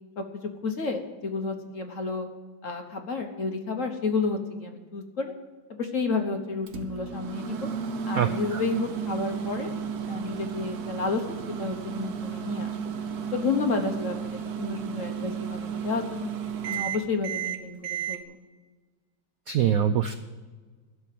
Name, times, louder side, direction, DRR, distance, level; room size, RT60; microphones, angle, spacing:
voice 1, 0.6-2.3 2.6-5.3 5.7-7.7 8.0-9.7 10.1-12.8 13.3-16.3 16.6-18.3, left 4 dB, 45° left, 4 dB, 1.3 m, -31 dB
Microwave oven, 6.7-18.2, right 7 dB, 60° right, 1.3 m, -33 dB
voice 2, 8.2-8.6 19.5-20.1, right 9 dB, 80° right, 10 dB, 0.8 m, -24 dB
11.5 x 7.1 x 9.3 m, 1.4 s
omnidirectional pair, 2.1 m